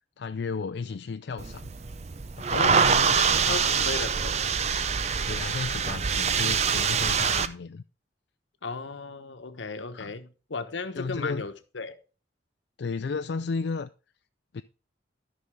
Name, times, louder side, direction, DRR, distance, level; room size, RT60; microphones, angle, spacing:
voice 1, 0.2-1.7 2.4-3.9 5.2-7.8 9.9-10.2 10.9-11.4 12.8-13.9 14.5-14.6, left 4 dB, 70° left, 0.4 m, -34 dB
sound 1, 1.4-7.5, right 6 dB, 35° right, 0.5 m, -25 dB
voice 2, 2.5-4.4 8.6-12.0, left 4 dB, 90° left, 1.1 m, -36 dB
13.0 x 5.8 x 3.6 m
head